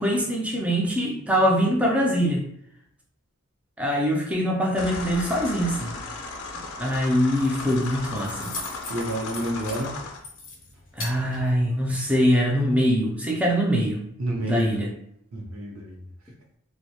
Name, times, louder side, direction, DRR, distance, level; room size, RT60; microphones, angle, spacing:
voice 1, 0.0-2.5 3.8-5.9 6.8-8.5 11.0-14.0 14.5-14.9, equal, 5° right, -1 dB, 0.3 m, -23 dB
sound 1, 4.8-10.2, left 3 dB, 85° left, 0.4 m, -36 dB
Keys jangling, 7.1-12.1, left 2 dB, 40° left, 0.6 m, -41 dB
voice 2, 8.8-10.0 14.2-14.8 15.3-16.0, right 1 dB, 85° right, 0 dB, 0.6 m, -29 dB
2.2 x 2.1 x 2.7 m, 0.73 s
head